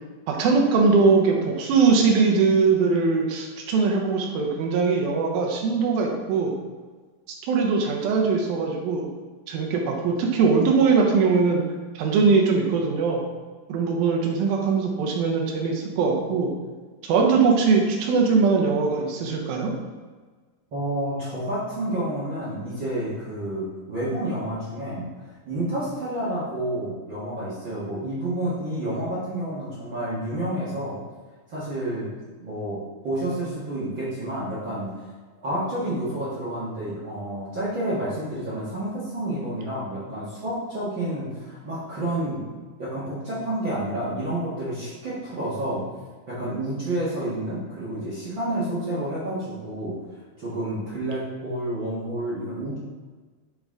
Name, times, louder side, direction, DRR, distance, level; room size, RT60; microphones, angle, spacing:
voice 1, 0.3-6.5 7.5-9.1 9.5-11.6 12.0-13.2 13.7-16.5 17.0-19.7, right 4 dB, 75° right, 0 dB, 2.6 m, -21 dB
voice 2, 20.7-25.1 25.4-31.0 31.5-32.1 32.4-34.9 35.4-42.4 42.8-45.8 46.3-50.0 50.4-52.8, right 1 dB, 55° right, -9 dB, 1.3 m, -29 dB
9.3 x 4.0 x 3.8 m, 1.4 s
omnidirectional pair, 4.5 m